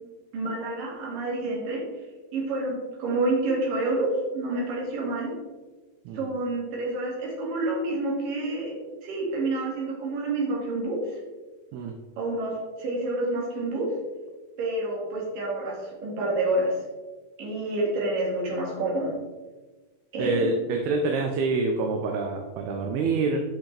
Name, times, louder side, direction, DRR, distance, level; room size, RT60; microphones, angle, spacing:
voice 1, 0.3-1.8 2.3-4.1 4.3-5.3 6.1-8.8 9.0-11.2 12.2-13.9 14.6-16.8 17.4-19.1 20.1-20.5, right 2 dB, 60° right, -4 dB, 3.6 m, -28 dB
voice 2, 20.2-23.4, right 3 dB, 80° right, 2 dB, 2.6 m, -26 dB
8.3 x 6.0 x 3.3 m, 1.2 s
omnidirectional pair, 4.5 m